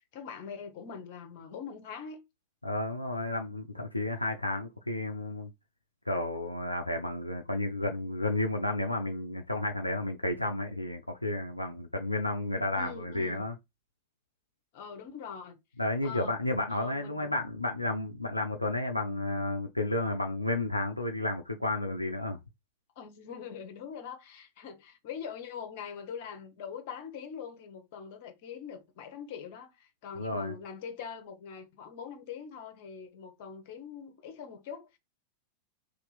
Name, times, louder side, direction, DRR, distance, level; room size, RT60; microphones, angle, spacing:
voice 1, 0.1-2.2 12.7-13.4 14.7-15.6 16.0-16.3 16.7-17.3 23.0-35.0, left 7 dB, 50° left, 1.0 m, -43 dB
voice 2, 2.6-5.5 6.1-13.5 15.8-22.4 30.2-30.5, left 2 dB, 85° left, 0.5 m, -32 dB
3.2 x 2.9 x 3.9 m
figure-of-eight pair, 90°, 0 cm